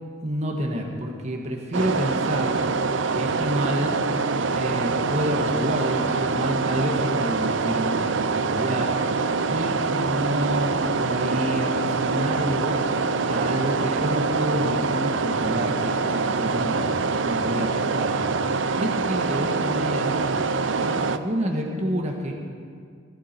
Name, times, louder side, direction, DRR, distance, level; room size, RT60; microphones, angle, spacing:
voice 1, 0.2-2.6 3.1-4.0 4.5-8.9 9.5-12.8 13.2-18.2 18.5-20.2 20.8-22.3, equal, 35° right, 0 dB, 1.4 m, -29 dB
sound 1, 1.7-21.2, right 4 dB, 65° right, 0.6 m, -25 dB
18.5 x 12.5 x 4.5 m, 2.1 s
head